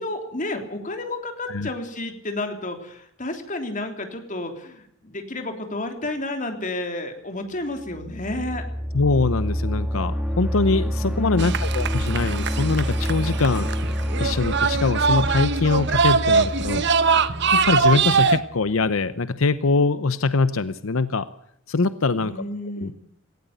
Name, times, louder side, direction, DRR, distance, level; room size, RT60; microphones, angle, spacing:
voice 1, 0.0-8.6 11.0-11.5 22.2-23.0, left 2 dB, 40° left, 5 dB, 3.3 m, -31 dB
sound 1, 7.8-18.5, equal, 5° right, 2.8 m, -28 dB
voice 2, 8.9-13.7 14.2-16.8 17.5-21.3 21.7-22.3 22.8-22.9, left 3 dB, 85° left, 14 dB, 0.8 m, -23 dB
sound 2, 11.4-18.4, right 5 dB, 55° right, 1.1 m, -22 dB
18.0 x 17.0 x 9.3 m, 0.72 s
head